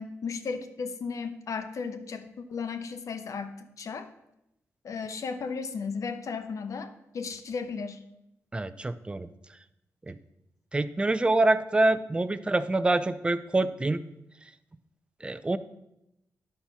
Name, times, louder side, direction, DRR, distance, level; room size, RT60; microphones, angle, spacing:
voice 1, 0.0-4.1 4.8-8.0, left 5 dB, 70° left, 9 dB, 0.8 m, -35 dB
voice 2, 8.5-9.3 10.1-10.2 10.7-14.0 15.2-15.6, right 2 dB, 20° right, 13 dB, 0.5 m, -26 dB
11.0 x 4.3 x 5.7 m, 0.85 s
wide cardioid pair, 100°, 6 cm